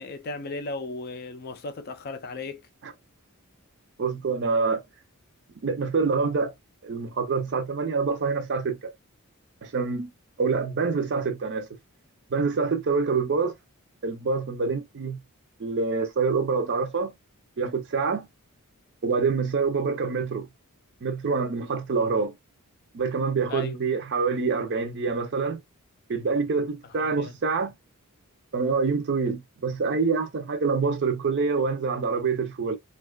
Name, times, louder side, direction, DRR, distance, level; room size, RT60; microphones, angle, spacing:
voice 1, 0.0-2.7 23.5-23.8 26.9-27.3, left 3 dB, 45° left, 0.4 m, -36 dB
voice 2, 4.0-4.8 5.6-6.5 6.8-8.9 9.6-10.1 10.4-11.7 12.3-13.5 14.0-15.2 15.6-17.1 17.6-18.3 19.0-20.5 21.0-22.4 22.9-25.6 26.1-27.8 28.5-32.8, right 4 dB, 50° right, 0.5 m, -26 dB
2.6 x 2.2 x 2.2 m
head